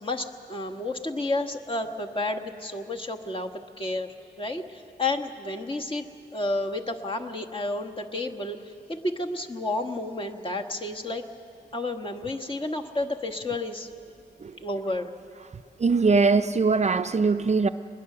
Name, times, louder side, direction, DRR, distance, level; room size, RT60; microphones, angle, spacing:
voice 1, 0.0-3.5 3.8-6.0 6.3-8.6 8.9-11.2 11.7-13.9 14.6-15.1, left 2 dB, 30° left, 1.3 m, -31 dB
voice 2, 15.8-17.7, right 4 dB, 40° right, 0.5 m, -21 dB
23.0 x 20.5 x 6.8 m
wide cardioid pair, 105°, 18 cm